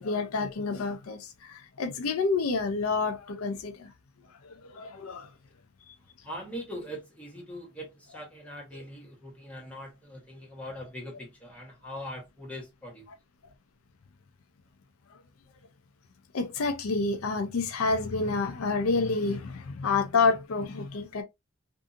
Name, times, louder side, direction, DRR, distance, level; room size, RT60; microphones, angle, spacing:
voice 1, 0.0-3.9 4.4-5.3 5.9-6.0 8.7-8.8 16.3-21.2, left 4 dB, 85° left, 0.5 m, -29 dB
voice 2, 6.2-13.1, equal, 5° left, 1.1 m, -41 dB
2.6 x 2.5 x 2.4 m
head